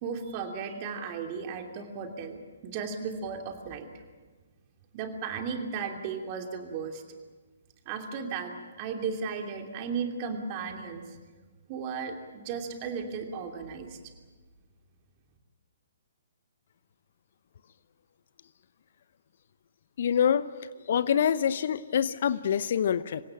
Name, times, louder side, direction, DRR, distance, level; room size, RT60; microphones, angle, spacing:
voice 1, 0.0-3.9 4.9-7.0 7.8-11.0 11.7-14.1, right 5 dB, 35° right, 4 dB, 2.8 m, -35 dB
voice 2, 20.0-20.5 20.9-23.2, left 8 dB, 55° left, 16 dB, 0.7 m, -25 dB
27.0 x 16.5 x 9.0 m, 1.4 s
figure-of-eight pair, 130°, 0 cm